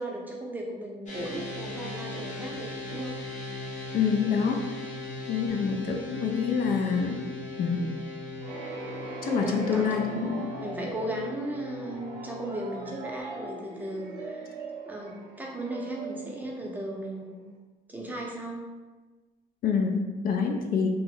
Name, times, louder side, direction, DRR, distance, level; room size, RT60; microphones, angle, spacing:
voice 1, 0.0-3.2 9.2-10.1 10.6-14.6 14.9-17.4 17.9-18.7, right 1 dB, 10° right, -2 dB, 0.6 m, -36 dB
sound 1, 1.1-13.2, left 2 dB, 45° left, 0.8 m, -39 dB
voice 2, 3.9-4.8 5.3-7.2 7.6-8.0 9.2-10.7 19.6-20.9, left 6 dB, 60° left, 3 dB, 0.4 m, -27 dB
sound 2, 8.4-17.2, right 3 dB, 55° right, 0.7 m, -41 dB
2.8 x 2.0 x 3.7 m, 1.2 s
cardioid pair, 110°, 17 cm